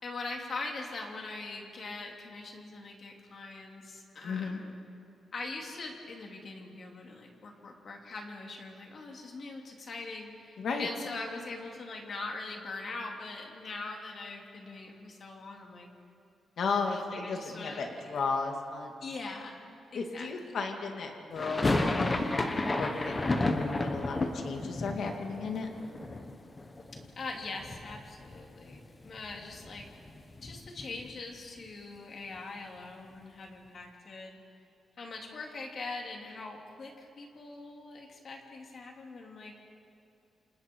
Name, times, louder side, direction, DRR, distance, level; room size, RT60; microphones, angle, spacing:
voice 1, 0.0-4.7 5.3-15.9 16.6-18.2 19.0-19.6 19.9-20.6 27.2-29.9 30.4-34.4 35.0-39.5, left 3 dB, 40° left, 1 dB, 3.1 m, -42 dB
voice 2, 4.2-4.6 10.6-10.9 16.6-18.9 19.9-22.4 22.7-25.7, left 4 dB, 55° left, 3 dB, 2.3 m, -34 dB
sound 1, 21.3-27.3 27.6-28.4 28.7-28.8 29.0-31.2, left 2 dB, 20° left, 1.2 m, -32 dB
28.5 x 27.5 x 4.7 m, 2.6 s
wide cardioid pair, 175°, 0 cm